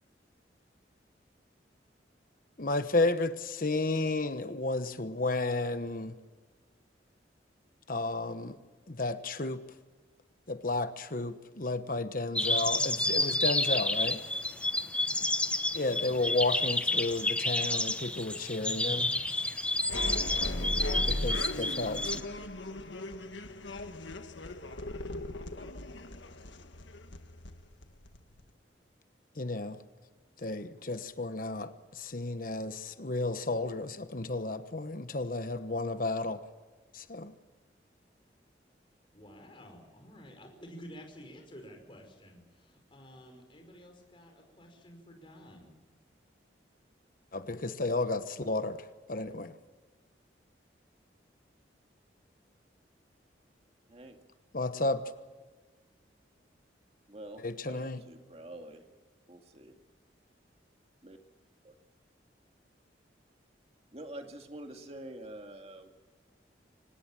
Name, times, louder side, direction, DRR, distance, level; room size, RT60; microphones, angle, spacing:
voice 1, 2.6-6.1 7.9-8.6 8.9-9.6 10.5-14.2 15.8-19.1 21.1-22.2 29.4-29.8 30.4-36.4 36.9-37.3 47.3-48.8 49.1-49.5 54.5-55.0 57.4-58.0, left 2 dB, 50° left, 1.2 m, -32 dB
sound 1, 12.4-22.2, left 1 dB, 5° left, 1.0 m, -30 dB
sound 2, 19.9-28.5, left 1 dB, 85° left, 1.7 m, -37 dB
voice 2, 39.1-45.7, equal, 30° left, 5.3 m, -51 dB
voice 3, 57.1-57.4 57.7-58.8 59.3-59.8 61.0-61.2 61.6-61.7 63.9-65.9, right 1 dB, 35° right, 2.2 m, -46 dB
25.5 x 19.5 x 7.6 m
head